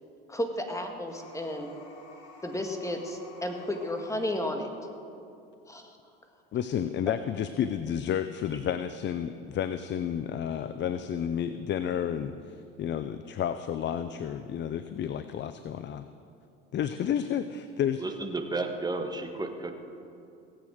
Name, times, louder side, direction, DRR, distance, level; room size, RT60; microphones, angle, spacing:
voice 1, 0.3-1.7 2.4-4.7 5.7-6.0, left 1 dB, 10° left, 4 dB, 1.9 m, -33 dB
sound 1, 1.0-4.5, left 3 dB, 65° left, 2.6 m, -51 dB
voice 2, 6.5-16.1 16.7-18.0, left 9 dB, 40° left, 11 dB, 0.6 m, -31 dB
voice 3, 18.0-19.7, right 2 dB, 15° right, 4 dB, 1.7 m, -32 dB
18.0 x 8.4 x 6.4 m, 2.6 s
hypercardioid pair, 80°, 30 cm